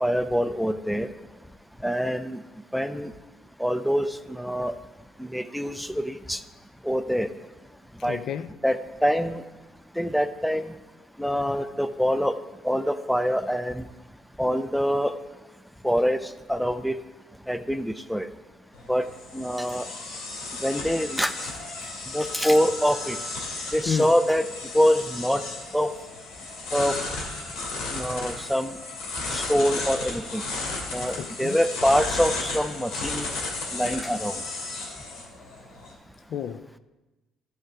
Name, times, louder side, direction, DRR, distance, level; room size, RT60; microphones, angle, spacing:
voice 1, 0.0-1.1 1.8-2.4 2.7-3.1 3.6-4.7 5.2-6.4 6.8-7.3 8.0-8.2 8.6-9.4 10.0-10.7 11.2-12.3 12.6-13.8 14.4-15.1 15.8-17.0 17.5-18.3 18.9-19.1 19.3-19.9 20.6-21.5 22.1-23.2 23.7-24.5 24.7-25.4 25.7-25.9 26.7-27.0 27.9-28.8 29.3-30.4 30.9-33.3 33.7-34.4, equal, ahead, 0.5 m, -25 dB
voice 2, 8.1-8.5 23.9-24.1 31.2-31.6 36.3-36.8, left 7 dB, 60° left, 0.4 m, -30 dB
sound 1, 18.7-35.9, left 3 dB, 80° left, 2.6 m, -34 dB
12.0 x 5.0 x 4.6 m
cardioid pair, 95°, 0 cm